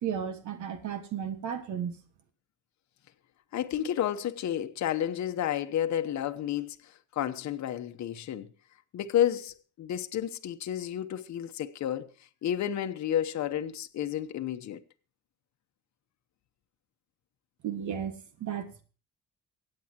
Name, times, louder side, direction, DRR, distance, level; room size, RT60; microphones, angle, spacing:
voice 1, 0.0-2.0 17.6-18.1 18.4-18.8, right 8 dB, 75° right, 1.5 m, -34 dB
voice 2, 3.5-8.5 8.9-14.8, left 10 dB, 65° left, 0.9 m, -31 dB
24.0 x 8.6 x 2.8 m
cardioid pair, 90°, 30 cm